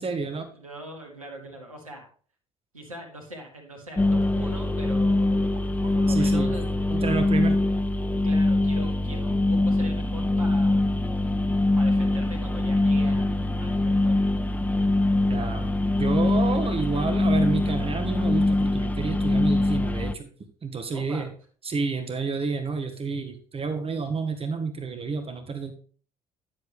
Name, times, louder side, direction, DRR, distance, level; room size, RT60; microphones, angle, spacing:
voice 1, 0.0-0.5 6.1-7.6 15.3-15.7 16.0-20.3 20.6-21.3 21.6-25.7, right 4 dB, 35° right, 8 dB, 1.6 m, -30 dB
voice 2, 0.5-2.1 2.7-5.5 5.9-6.7 8.2-10.9 11.8-14.3 20.9-21.3, equal, 85° right, 1 dB, 1.8 m, -41 dB
sound 1, 4.0-20.1, left 2 dB, 10° left, 0.5 m, -23 dB
10.5 x 7.4 x 3.4 m, 0.43 s
figure-of-eight pair, 50°, 17 cm